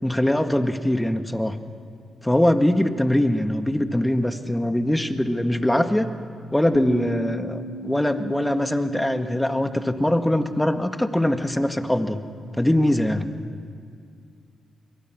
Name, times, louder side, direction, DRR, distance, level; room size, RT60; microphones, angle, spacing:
voice 1, 0.0-1.6 2.2-6.1 6.5-12.2 12.6-13.2, left 1 dB, 10° left, 8 dB, 1.8 m, -22 dB
Bass guitar, 6.7-13.0, right 2 dB, 85° left, 2.9 m, -39 dB
26.5 x 22.5 x 6.3 m, 2.3 s
supercardioid pair, 50°, 0 cm